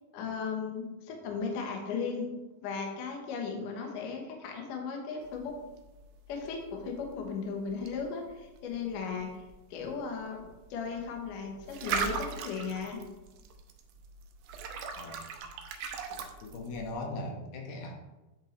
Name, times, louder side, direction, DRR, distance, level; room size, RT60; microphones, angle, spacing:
voice 1, 0.1-2.3 2.6-5.5 6.3-9.4 9.7-10.4 10.7-13.0, left 5 dB, 70° left, 2 dB, 2.4 m, -36 dB
sound 1, 5.2-16.9, right 5 dB, 80° right, 1.8 m, -40 dB
voice 2, 16.1-18.0, left 2 dB, 85° left, 0 dB, 3.1 m, -39 dB
10.0 x 5.3 x 3.1 m, 1.1 s
omnidirectional pair, 4.3 m